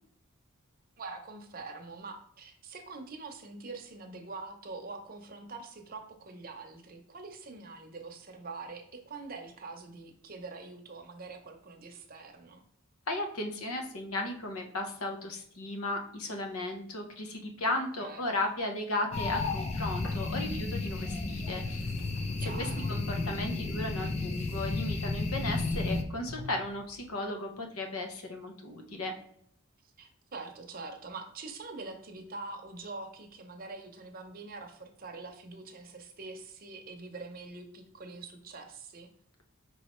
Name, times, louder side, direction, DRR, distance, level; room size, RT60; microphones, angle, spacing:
voice 1, 1.0-12.6 17.7-18.5 22.4-23.0 29.8-39.1, right 3 dB, 40° right, 4 dB, 0.7 m, -44 dB
voice 2, 13.1-21.8 22.6-29.1, left 2 dB, 85° left, 4 dB, 0.8 m, -35 dB
sound 1, 19.1-26.0, left 3 dB, 30° left, 0.4 m, -32 dB
sound 2, 20.0-20.8 21.1-25.1 25.6-25.7 26.3-27.2, left 2 dB, 60° left, 1.2 m, -50 dB
5.5 x 3.1 x 3.0 m, 0.64 s
head